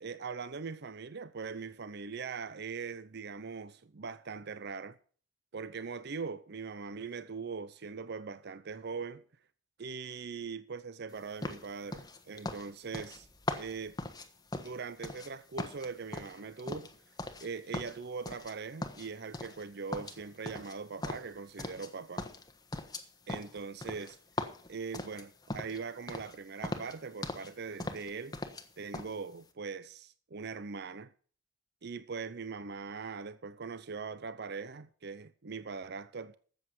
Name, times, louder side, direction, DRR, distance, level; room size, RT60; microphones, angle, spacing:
voice 1, 0.0-5.0 5.5-9.2 9.8-13.3 13.6-14.0 14.5-16.9 17.4-22.3 23.3-24.2 24.7-28.4 28.8-31.1 31.8-36.4, right 5 dB, 60° right, 0.6 m, -41 dB
sound 1, 11.4-15.3 15.6-17.5 17.7-18.5 18.8-19.7 19.9-21.9 22.2-25.8 26.1-26.4 26.6-27.5 27.8-28.7 28.9-29.1, left 2 dB, 20° left, 1.3 m, -40 dB
13.0 x 8.1 x 6.0 m
head